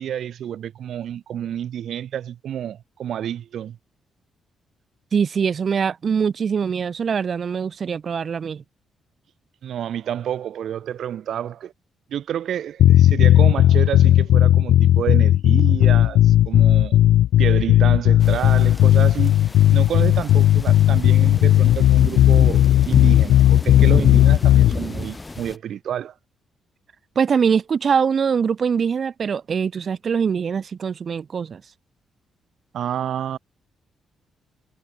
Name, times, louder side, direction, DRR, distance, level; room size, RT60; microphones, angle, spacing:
voice 1, 0.0-3.8 9.6-11.7 12.1-17.0 17.4-26.1 32.7-33.4, right 10 dB, 60° right, 3.2 m, -29 dB
voice 2, 5.1-8.6 27.2-31.6, right 6 dB, 35° right, 0.5 m, -23 dB
sound 1, 12.8-24.7, left 13 dB, 85° left, 0.5 m, -15 dB
sound 2, 18.2-25.6, left 2 dB, 15° left, 1.8 m, -33 dB
cardioid pair, 165°, 0 cm